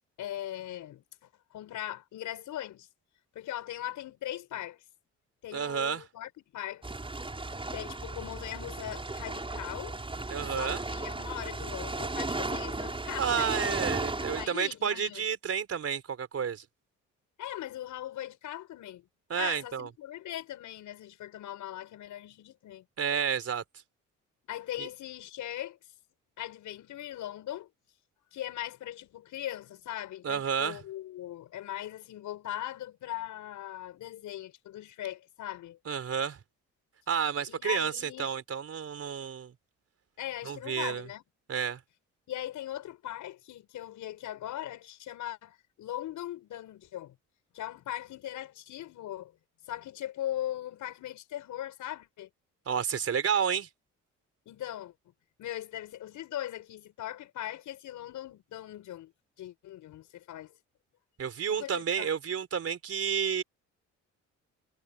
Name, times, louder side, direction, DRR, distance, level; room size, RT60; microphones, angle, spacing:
voice 1, 0.2-1.0 1.5-2.9 3.3-4.8 5.4-6.9 7.7-10.0 10.5-13.8 14.2-15.2 17.4-19.1 19.3-22.9 24.5-25.8 26.4-27.7 28.3-35.8 37.5-38.3 40.2-41.2 42.3-47.2 47.5-49.3 49.7-52.3 54.5-54.9 55.4-59.1 59.4-60.5 61.5-62.1, left 12 dB, 80° left, 6.2 m, -40 dB
voice 2, 5.5-6.0 10.3-10.8 13.2-16.6 19.3-19.9 23.0-23.6 24.8-24.9 30.2-30.8 35.9-36.4 37.1-39.5 40.5-41.1 41.5-41.8 52.7-53.7 61.2-63.4, right 7 dB, 50° right, 4.1 m, -30 dB
sound 1, 6.8-14.5, right 2 dB, 15° right, 6.0 m, -35 dB
cardioid pair, 90°, 30 cm